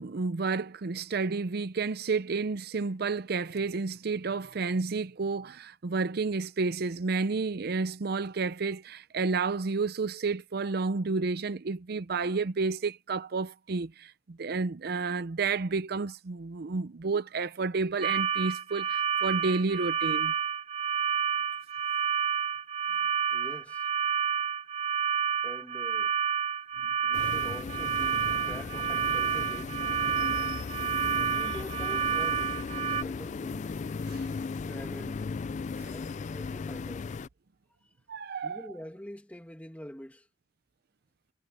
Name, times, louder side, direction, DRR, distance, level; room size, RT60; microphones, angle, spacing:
voice 1, 0.0-20.3 34.1-34.3 35.8-35.9 38.1-38.7, right 4 dB, 60° right, 0.6 m, -31 dB
sound 1, 18.0-33.0, right 7 dB, 40° right, 1.3 m, -29 dB
voice 2, 22.9-23.9 25.4-26.1 27.0-29.9 31.1-32.4 32.7-33.7 34.7-35.3 35.9-37.1 38.4-40.3, equal, 10° left, 2.3 m, -45 dB
sound 2, 27.1-37.3, left 4 dB, 40° left, 0.3 m, -36 dB
head